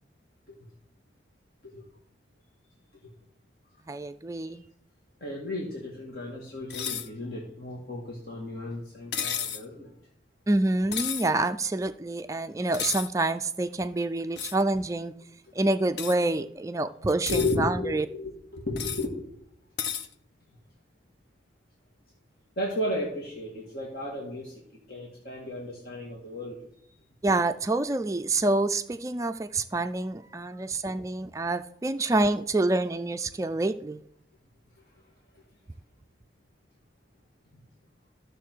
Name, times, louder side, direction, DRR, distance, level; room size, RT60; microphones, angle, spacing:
voice 1, 3.9-4.6 10.5-15.1 15.5-18.1 27.2-34.0, right 2 dB, 20° right, 9 dB, 0.3 m, -27 dB
voice 2, 5.2-9.9 15.4-15.5 17.3-19.3 22.6-24.6 24.9-26.9 30.5-30.7 34.9-35.0 35.3-35.4, left 2 dB, 55° left, -3 dB, 1.9 m, -34 dB
sound 1, 6.7-7.1 9.1-9.6 10.9-11.3 12.7-13.1 14.4-14.6 16.0-16.2 17.1-17.6 18.8-19.1 19.8-20.1, left 8 dB, 70° left, 0.7 m, -32 dB
13.0 x 6.6 x 4.6 m, 0.70 s
head